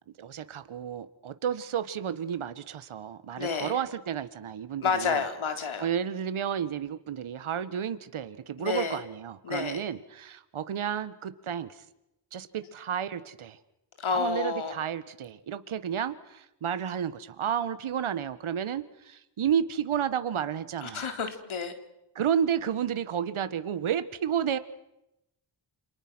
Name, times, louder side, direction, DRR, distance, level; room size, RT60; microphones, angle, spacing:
voice 1, 0.2-5.2 5.8-11.8 12.3-13.6 14.1-21.0 22.1-24.6, right 8 dB, 75° right, 12 dB, 1.6 m, -31 dB
voice 2, 3.4-3.8 4.8-5.9 8.6-9.0 9.4-9.8 14.0-14.8 20.8-21.7, left 5 dB, 75° left, 7 dB, 3.7 m, -30 dB
29.0 x 27.0 x 6.3 m, 0.86 s
cardioid pair, 75°, 49 cm